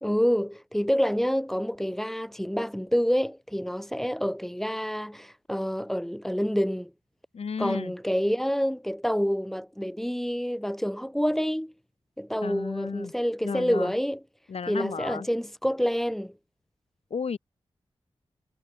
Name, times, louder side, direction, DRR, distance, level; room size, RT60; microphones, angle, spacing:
voice 1, 0.0-6.9 7.6-11.7 12.2-14.2 14.7-16.3, equal, 5° left, 3.2 m, -27 dB
voice 2, 7.3-7.9 12.4-13.1 13.4-13.9 14.5-15.3 17.1-17.4, left 6 dB, 75° left, 4.6 m, -33 dB
wide cardioid pair, 70°, 10 cm